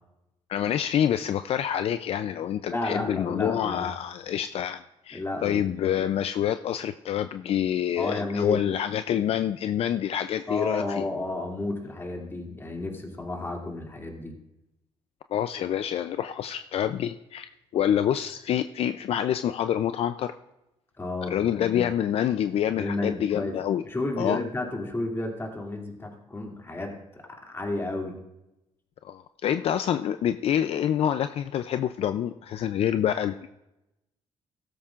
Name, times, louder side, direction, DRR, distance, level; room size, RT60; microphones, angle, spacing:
voice 1, 0.5-11.0 15.3-20.3 21.3-23.8 24.2-24.4 29.0-33.5, left 10 dB, 65° left, 10 dB, 0.4 m, -27 dB
voice 2, 2.7-3.8 5.1-5.7 8.0-8.6 10.5-14.4 21.0-21.4 22.7-23.5 23.8-28.2, left 2 dB, 20° left, 1 dB, 2.5 m, -32 dB
16.0 x 13.0 x 2.5 m, 0.92 s
cardioid pair, 100°, 11 cm